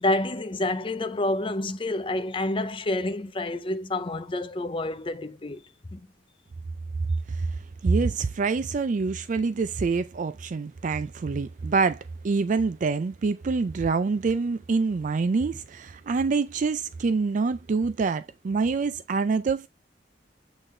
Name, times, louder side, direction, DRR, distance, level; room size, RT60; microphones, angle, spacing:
voice 1, 0.0-5.6 5.9-6.0, left 2 dB, 30° left, 0.6 m, -28 dB
voice 2, 7.8-19.7, right 4 dB, 45° right, 0.4 m, -26 dB
8.2 x 3.8 x 3.3 m
head